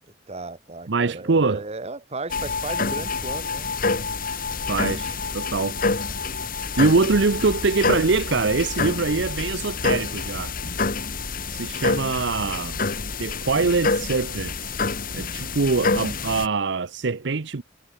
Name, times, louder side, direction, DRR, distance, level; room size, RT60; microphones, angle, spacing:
voice 1, 0.3-3.7, right 2 dB, 35° right, 2.1 m, -35 dB
voice 2, 0.9-1.6 4.7-5.8 6.8-10.6 11.5-12.8 13.2-14.8 15.1-17.6, right 4 dB, 70° right, 0.8 m, -23 dB
sound 1, 2.3-16.5, left 4 dB, 50° left, 2.7 m, -27 dB
head